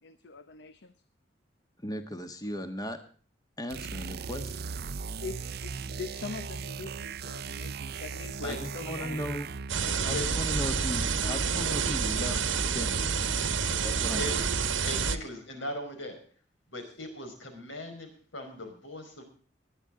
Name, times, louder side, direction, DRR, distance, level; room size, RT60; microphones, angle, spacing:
voice 1, 0.0-0.9 5.2-9.2 14.6-14.8 16.8-16.9, left 4 dB, 65° left, 12 dB, 0.9 m, -43 dB
voice 2, 1.8-3.0 3.6-4.6 8.4-9.5 10.0-13.1 13.8-14.4, equal, 20° left, 7 dB, 1.4 m, -37 dB
sound 1, 3.7-9.8, right 5 dB, 60° right, 0.6 m, -38 dB
sound 2, 9.7-15.2, right 5 dB, 85° right, 1.3 m, -28 dB
voice 3, 14.8-16.2 16.7-19.2, left 1 dB, 85° left, 5 dB, 5.2 m, -39 dB
21.0 x 10.5 x 3.8 m, 0.42 s
head